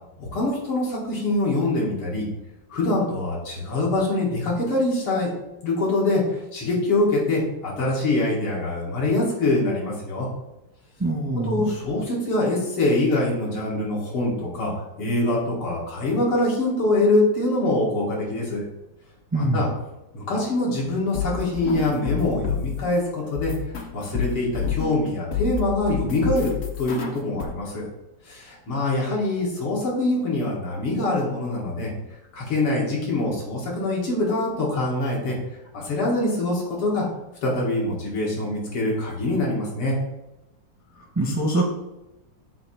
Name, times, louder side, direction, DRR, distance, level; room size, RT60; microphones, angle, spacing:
voice 1, 0.2-2.3 2.7-5.3 5.6-10.3 11.5-18.6 19.3-19.7 20.1-23.5 23.9-27.9 28.2-31.9 32.3-35.4 35.7-37.0 37.4-40.0, left 2 dB, 80° left, -5 dB, 2.9 m, -24 dB
voice 2, 11.0-11.6 19.3-19.7 41.1-41.7, right 2 dB, 15° right, -1 dB, 0.5 m, -23 dB
sound 1, 20.9-22.9 23.4-25.1 25.3-27.5, left 7 dB, 65° left, 0.6 m, -29 dB
7.8 x 2.9 x 6.1 m, 0.94 s
omnidirectional pair, 2.4 m